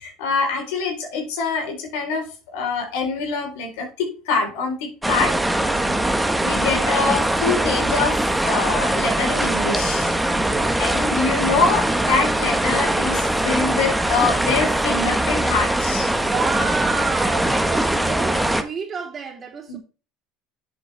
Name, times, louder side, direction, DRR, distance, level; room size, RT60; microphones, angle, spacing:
voice 1, 0.0-2.3 2.5-5.3 6.4-10.2 10.8-16.1 19.7-19.8, left 4 dB, 75° left, 4.2 m, -24 dB
sound 1, 5.0-18.6, right 1 dB, 5° right, 1.6 m, -21 dB
voice 2, 5.6-6.3 10.3-10.8 16.2-19.8, right 5 dB, 35° right, 3.2 m, -30 dB
10.0 x 7.7 x 3.5 m
hypercardioid pair, 80°, 0 cm